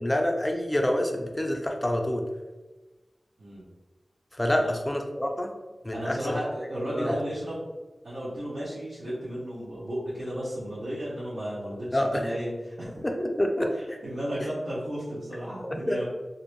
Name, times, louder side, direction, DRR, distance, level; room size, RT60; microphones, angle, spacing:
voice 1, 0.0-2.2 4.4-5.5 5.8-6.4 6.8-7.1 11.9-12.3 13.0-13.7 15.6-16.0, left 1 dB, 20° left, 3 dB, 0.4 m, -27 dB
voice 2, 5.9-7.6 8.0-13.0 13.6-16.0, equal, 85° right, -12 dB, 0.8 m, -34 dB
2.5 x 2.1 x 3.0 m, 1.2 s
wide cardioid pair, 65°, 0 cm